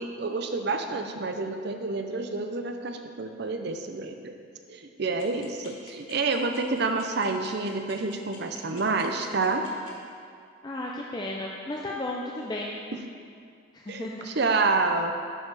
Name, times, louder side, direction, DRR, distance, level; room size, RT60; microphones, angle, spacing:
voice 1, 0.0-4.4 4.7-9.6 13.9-15.1, right 3 dB, 50° right, 6 dB, 0.6 m, -28 dB
sound 1, 5.2-9.9, left 5 dB, 70° left, 1.6 m, -48 dB
voice 2, 10.6-12.7 13.7-14.3, left 1 dB, 20° left, -2 dB, 0.4 m, -34 dB
10.5 x 4.7 x 4.8 m, 2.3 s
head